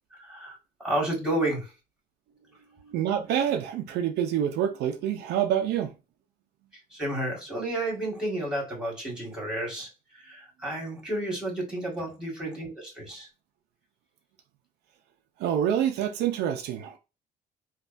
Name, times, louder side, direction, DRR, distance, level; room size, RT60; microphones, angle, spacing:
voice 1, 0.1-1.7 6.9-13.3, right 1 dB, 5° right, 1.8 m, -31 dB
voice 2, 2.9-5.9 15.4-17.0, right 9 dB, 80° right, 0.5 m, -27 dB
3.3 x 2.3 x 2.5 m
cardioid pair, 110°, 17 cm